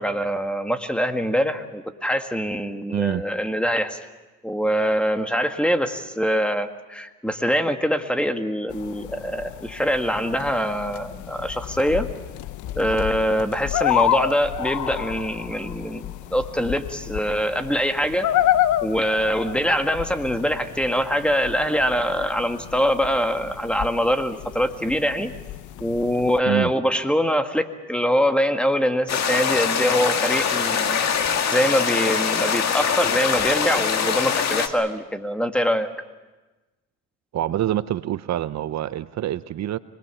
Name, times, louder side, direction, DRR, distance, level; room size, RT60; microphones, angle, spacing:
voice 1, 0.0-4.0 4.4-12.1 12.8-18.3 18.8-25.3 25.8-31.1 31.5-35.9, equal, 5° left, 6 dB, 1.7 m, -23 dB
voice 2, 2.9-3.2 26.4-26.7 37.3-39.8, right 12 dB, 65° right, 14 dB, 0.7 m, -25 dB
sound 1, 8.7-26.4, left 12 dB, 75° left, 0.8 m, -29 dB
sound 2, 29.1-34.7, left 7 dB, 60° left, 2.0 m, -23 dB
25.5 x 20.5 x 7.1 m, 1.2 s
cardioid pair, 90°, 30 cm